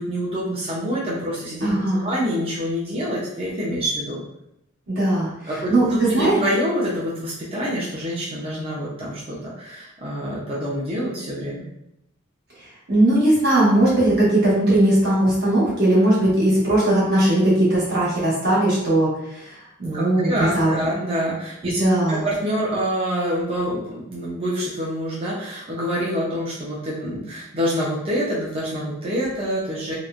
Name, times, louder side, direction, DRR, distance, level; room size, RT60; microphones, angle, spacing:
voice 1, 0.0-1.7 2.0-4.2 5.5-11.6 19.9-21.8 22.1-29.9, equal, 30° right, -7 dB, 0.5 m, -26 dB
voice 2, 1.6-2.1 4.9-5.3 5.7-6.4 12.9-20.7 21.6-22.2, right 1 dB, 55° right, -7 dB, 1.1 m, -19 dB
2.9 x 2.0 x 2.4 m, 0.83 s
head